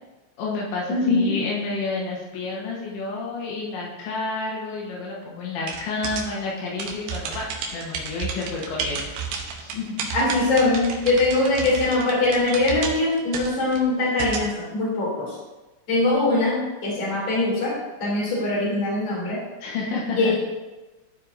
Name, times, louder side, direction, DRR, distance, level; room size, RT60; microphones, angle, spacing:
voice 1, 0.4-7.5 7.7-9.0 9.6-10.1 19.6-20.3, left 3 dB, 80° left, -3 dB, 3.4 m, -30 dB
voice 2, 0.9-1.3 10.1-15.3 15.9-17.7 18.0-19.4 20.1-20.3, left 2 dB, 25° left, -7 dB, 2.3 m, -22 dB
sound 1, 5.7-14.5, right 5 dB, 75° right, 2.3 m, -32 dB
13.5 x 4.6 x 2.6 m, 1.1 s
omnidirectional pair, 5.2 m